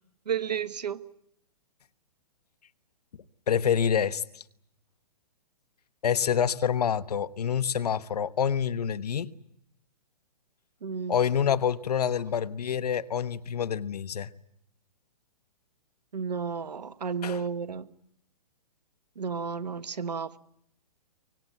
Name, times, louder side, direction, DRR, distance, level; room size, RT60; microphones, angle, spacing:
voice 1, 0.3-1.0 10.8-11.2 16.1-17.9 19.2-20.4, right 6 dB, 80° right, 1.3 m, -32 dB
voice 2, 3.5-4.4 6.0-9.3 11.1-14.3 17.2-17.4, left 8 dB, 70° left, 1.2 m, -27 dB
24.5 x 19.5 x 9.4 m
hypercardioid pair, 130°, 21 cm